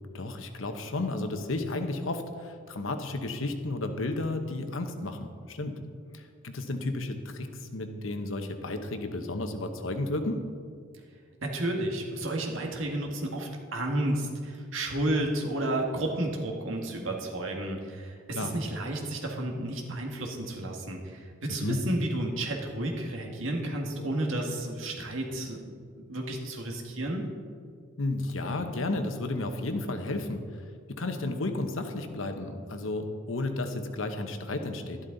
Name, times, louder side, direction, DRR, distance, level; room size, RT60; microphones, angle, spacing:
voice 1, 0.1-5.7 6.1-10.4 18.3-18.5 21.5-21.8 28.0-30.6 30.9-35.0, left 2 dB, 90° left, 6 dB, 1.0 m, -32 dB
voice 2, 11.4-25.6 26.1-27.2, right 1 dB, 85° right, 1 dB, 1.8 m, -32 dB
12.0 x 11.5 x 4.0 m, 2.1 s
head